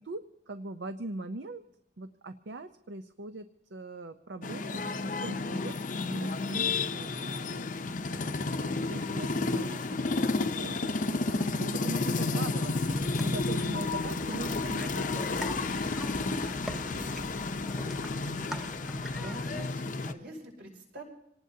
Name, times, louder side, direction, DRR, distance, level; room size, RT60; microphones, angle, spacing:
voice 1, 0.0-1.6 2.0-5.8 6.1-7.8 8.9-15.9 16.7-17.1, right 2 dB, 80° right, 9 dB, 0.7 m, -42 dB
sound 1, 4.4-20.1, left 3 dB, 45° left, 0.6 m, -31 dB
voice 2, 8.2-8.6 16.4-16.8 17.6-21.0, right 1 dB, 60° right, 0 dB, 5.8 m, -47 dB
sound 2, 12.8-19.7, equal, ahead, 0.7 m, -43 dB
26.5 x 18.5 x 2.8 m, 0.80 s
head